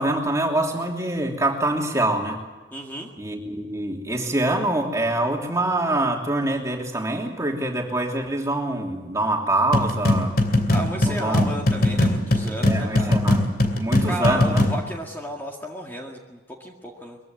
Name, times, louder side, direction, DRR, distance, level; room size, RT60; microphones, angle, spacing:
voice 1, 0.0-2.4 3.2-10.4 11.1-11.5 12.6-13.4 13.7-14.6, right 1 dB, 20° right, 1 dB, 3.0 m, -25 dB
voice 2, 2.7-3.1 10.7-13.2 14.0-17.2, equal, 10° left, 0 dB, 2.0 m, -33 dB
sound 1, 9.7-14.8, left 1 dB, 55° left, 2.8 m, -21 dB
22.5 x 15.5 x 9.2 m, 1.2 s
head